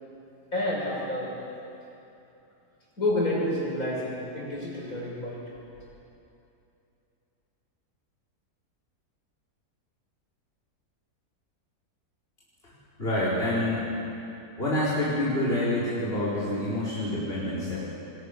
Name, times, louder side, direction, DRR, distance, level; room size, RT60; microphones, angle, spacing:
voice 1, 0.5-1.3 3.0-5.4, left 1 dB, 55° left, -5 dB, 7.3 m, -29 dB
voice 2, 13.0-13.8 14.6-17.8, left 1 dB, 35° left, -9 dB, 5.0 m, -27 dB
27.5 x 22.0 x 6.8 m, 2.8 s
omnidirectional pair, 1.8 m